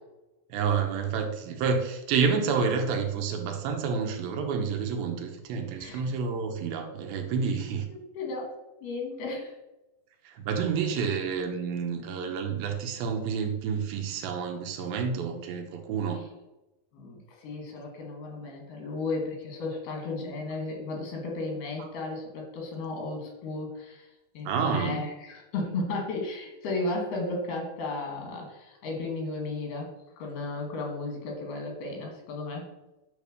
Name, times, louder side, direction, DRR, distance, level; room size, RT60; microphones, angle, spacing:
voice 1, 0.5-7.9 10.3-16.2 24.5-25.0, right 6 dB, 75° right, 4 dB, 2.7 m, -29 dB
voice 2, 8.2-9.5 16.1-16.2 16.9-32.7, left 3 dB, 85° left, 0 dB, 4.0 m, -34 dB
9.9 x 3.4 x 6.6 m, 1.0 s
omnidirectional pair, 4.3 m